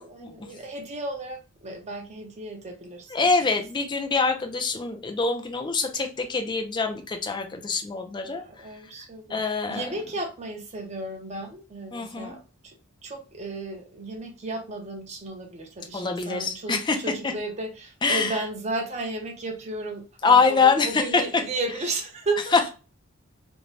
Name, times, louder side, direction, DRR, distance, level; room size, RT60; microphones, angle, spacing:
voice 1, 0.0-3.1 8.3-12.7 13.0-22.7, right 2 dB, 30° right, 0.6 m, -34 dB
voice 2, 3.1-8.4 9.3-9.9 11.9-12.3 15.9-17.0 18.0-18.3 20.2-21.2, left 4 dB, 20° left, 0.4 m, -24 dB
2.6 x 2.1 x 3.1 m
head